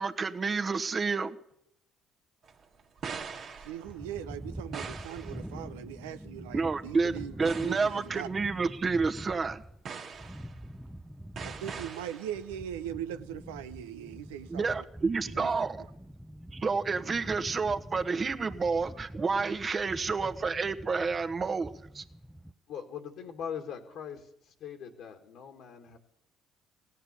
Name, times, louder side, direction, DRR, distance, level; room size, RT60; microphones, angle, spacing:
voice 1, 0.0-1.3 6.5-9.6 14.5-15.8 16.5-22.0, right 4 dB, 35° right, 1.3 m, -30 dB
sound 1, 2.4-4.2 4.7-5.5 6.0-6.3 7.1-7.2 7.4-8.2 8.8-8.9 9.8-10.6 11.4-12.5, right 6 dB, 55° right, 1.8 m, -42 dB
voice 2, 3.6-8.3 11.4-14.8 15.3-15.6 19.0-19.1, right 10 dB, 85° right, 0.7 m, -40 dB
sound 2, 3.8-22.5, equal, ahead, 0.7 m, -45 dB
voice 3, 22.7-26.0, left 8 dB, 65° left, 1.9 m, -41 dB
16.5 x 9.3 x 8.2 m
hypercardioid pair, 60°, 0 cm